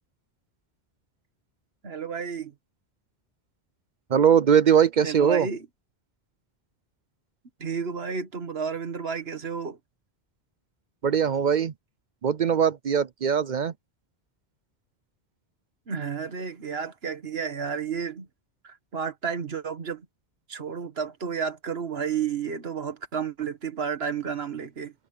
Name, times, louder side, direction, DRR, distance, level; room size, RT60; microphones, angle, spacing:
voice 1, 1.8-2.5 5.0-5.7 7.6-9.8 15.9-18.3 18.6-20.0 20.5-24.9, right 6 dB, 70° right, 1.7 m, -31 dB
voice 2, 4.1-5.5 11.0-11.7 12.2-13.7, right 8 dB, 55° right, 0.6 m, -21 dB
omnidirectional pair, 1.1 m